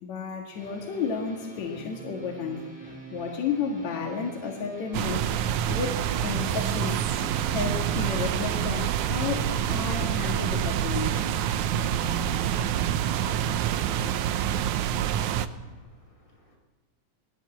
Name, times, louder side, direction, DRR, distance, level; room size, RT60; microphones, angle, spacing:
voice 1, 0.0-5.3 5.7-7.0 7.5-11.3, left 5 dB, 65° left, 0 dB, 3.0 m, -32 dB
sound 1, 0.5-14.1, right 1 dB, ahead, 5.5 m, -45 dB
sound 2, 4.9-15.5, right 10 dB, 75° right, 2.1 m, -27 dB
sound 3, 5.2-10.6, right 4 dB, 55° right, 2.7 m, -43 dB
voice 2, 14.7-16.6, left 1 dB, 25° left, 1 dB, 5.5 m, -62 dB
20.0 x 17.0 x 8.0 m, 1.3 s
omnidirectional pair, 3.7 m